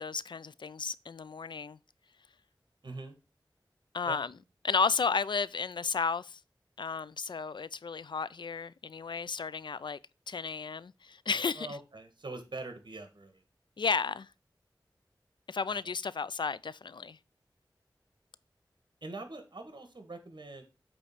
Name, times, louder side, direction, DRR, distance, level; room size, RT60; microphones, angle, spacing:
voice 1, 0.0-1.8 3.9-4.3 4.6-6.4 6.8-10.0 10.3-11.8 13.8-14.3 15.5-17.2, left 5 dB, 70° left, 0.4 m, -33 dB
voice 2, 2.8-3.1 4.1-4.2 11.5-13.4 19.0-20.6, right 2 dB, 65° right, 1.5 m, -43 dB
8.5 x 3.1 x 5.7 m
wide cardioid pair, 60°, 8 cm